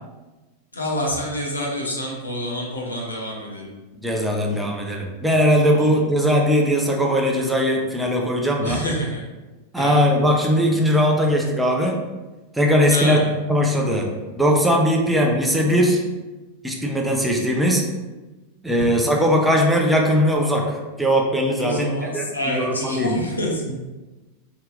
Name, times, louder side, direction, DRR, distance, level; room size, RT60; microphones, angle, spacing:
voice 1, 0.7-3.7 5.7-6.0 8.6-9.2 9.8-10.0 12.9-13.3 21.6-23.7, equal, 80° left, -2 dB, 0.9 m, -27 dB
voice 2, 4.0-8.8 9.7-12.0 12.5-13.2 13.5-16.0 16.6-17.8 18.6-21.9 22.1-23.2, equal, 5° right, 0 dB, 0.6 m, -19 dB
4.2 x 3.7 x 2.4 m, 1.2 s
figure-of-eight pair, 90°, 0 cm